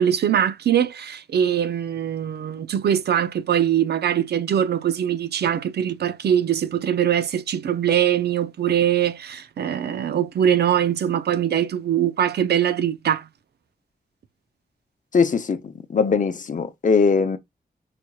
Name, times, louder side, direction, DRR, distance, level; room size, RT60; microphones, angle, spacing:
voice 1, 0.0-13.3, right 9 dB, 75° right, 0.4 m, -22 dB
voice 2, 15.1-15.6 15.9-17.4, left 5 dB, 50° left, 0.6 m, -20 dB
4.8 x 2.9 x 2.3 m
cardioid pair, 65°, 17 cm